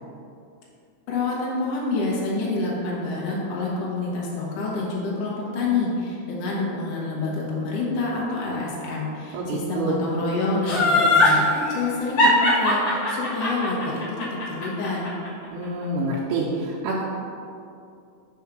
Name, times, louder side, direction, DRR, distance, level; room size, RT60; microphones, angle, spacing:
voice 1, 1.1-15.0, left 3 dB, 90° left, -4 dB, 1.4 m, -27 dB
voice 2, 9.3-10.0 15.5-17.0, right 2 dB, 85° right, -6 dB, 2.6 m, -27 dB
Laughter, 10.7-11.4 12.2-15.3 15.6-15.7, left 2 dB, 55° left, 1.4 m, -19 dB
6.1 x 3.6 x 6.1 m, 2.5 s
omnidirectional pair, 4.7 m